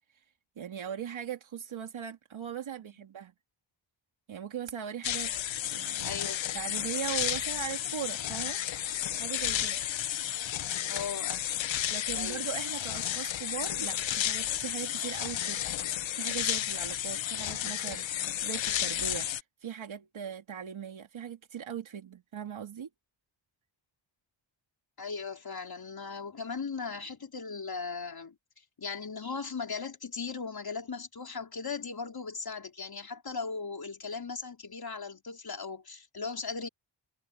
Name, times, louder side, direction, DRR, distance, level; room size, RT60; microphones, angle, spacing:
voice 1, 0.6-3.3 4.3-5.3 5.7-6.1 6.5-8.6 9.1-9.8 11.9-15.6 16.1-22.9, right 9 dB, 80° right, 2.4 m, -39 dB
sound 1, 5.0-19.4, left 11 dB, 75° left, 0.8 m, -32 dB
voice 2, 6.0-6.4 10.9-11.4 12.1-12.5 25.0-28.4 28.8-36.7, left 5 dB, 50° left, 4.4 m, -38 dB
cardioid pair, 80°, 46 cm